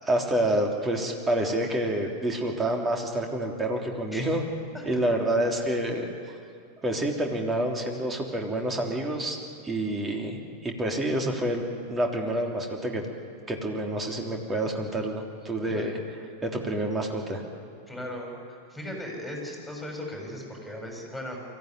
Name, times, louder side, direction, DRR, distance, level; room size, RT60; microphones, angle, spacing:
voice 1, 0.0-4.4 4.9-6.1 6.8-9.4 9.6-10.4 10.6-11.6 11.9-13.0 13.5-16.0 16.4-17.4, right 1 dB, 15° right, 1 dB, 3.5 m, -28 dB
voice 2, 17.9-21.4, left 1 dB, ahead, -1 dB, 7.4 m, -37 dB
23.5 x 16.0 x 9.8 m, 2.5 s
figure-of-eight pair, 90°, 0 cm